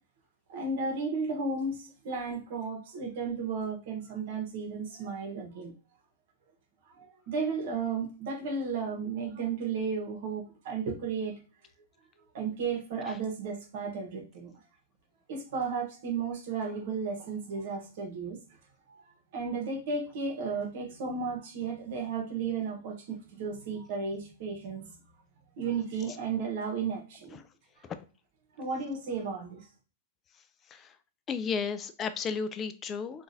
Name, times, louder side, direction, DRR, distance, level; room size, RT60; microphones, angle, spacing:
voice 1, 0.5-5.7 7.0-11.4 12.3-14.5 15.3-18.4 18.9-19.0 19.3-24.9 25.6-27.4 28.6-29.7, right 5 dB, 60° right, 1.2 m, -34 dB
voice 2, 31.3-33.2, left 6 dB, 20° left, 0.3 m, -33 dB
3.8 x 2.5 x 2.6 m
supercardioid pair, 150°, 0 cm